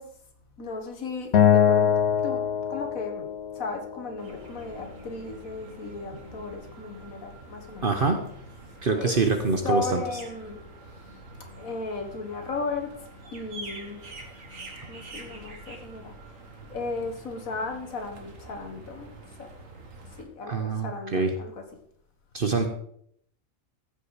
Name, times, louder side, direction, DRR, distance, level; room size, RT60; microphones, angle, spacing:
voice 1, 0.0-3.3 3.5-7.9 8.9-9.2 9.6-10.6 10.9-11.1 11.6-14.0 14.8-16.1 16.7-19.5 20.1-21.6, left 3 dB, 80° left, 4 dB, 2.0 m, -36 dB
Acoustic guitar, 1.3-4.6, left 8 dB, 60° left, 0.9 m, -23 dB
sound 1, 4.2-20.2, right 2 dB, 70° right, 1.9 m, -46 dB
voice 2, 7.8-8.2 8.8-10.0 20.5-21.3 22.3-22.7, right 4 dB, 45° right, 5 dB, 1.0 m, -25 dB
14.5 x 5.7 x 4.9 m, 0.68 s
omnidirectional pair, 1.4 m